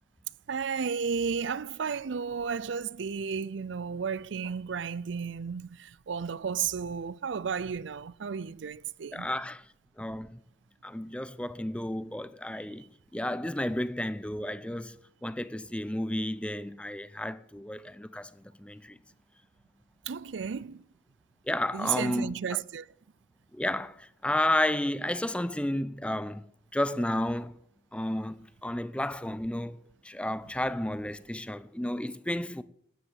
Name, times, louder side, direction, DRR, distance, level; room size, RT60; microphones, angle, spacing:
voice 1, 0.5-9.3 12.6-12.7 20.1-20.8 21.7-22.9, right 6 dB, 80° right, 0.5 m, -33 dB
voice 2, 9.1-9.7 10.0-10.4 10.8-12.8 13.1-15.0 15.2-19.0 21.5-22.3 23.5-26.4 26.7-27.6 27.9-32.6, left 1 dB, 5° left, 0.6 m, -32 dB
13.0 x 9.9 x 9.0 m
head